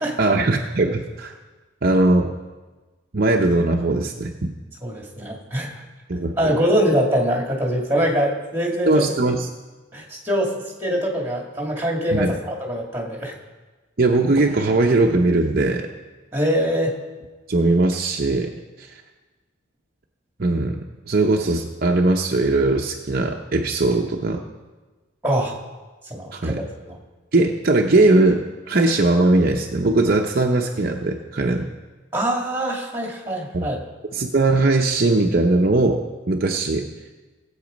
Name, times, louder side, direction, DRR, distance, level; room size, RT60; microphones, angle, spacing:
voice 1, 0.2-1.3 1.8-2.3 3.1-4.5 6.1-6.5 8.9-9.5 12.1-12.3 14.0-15.9 17.5-18.9 20.4-20.8 21.1-24.4 26.3-26.6 27.3-31.7 33.5-33.7 34.1-36.9, right 2 dB, 45° right, 1 dB, 0.7 m, -20 dB
voice 2, 4.8-5.8 6.4-9.0 9.9-10.5 10.8-13.3 16.3-16.9 25.2-25.5 26.1-26.5 26.8-27.0 32.1-33.8, equal, 10° right, -1 dB, 2.2 m, -23 dB
18.0 x 8.1 x 5.2 m, 1.2 s
head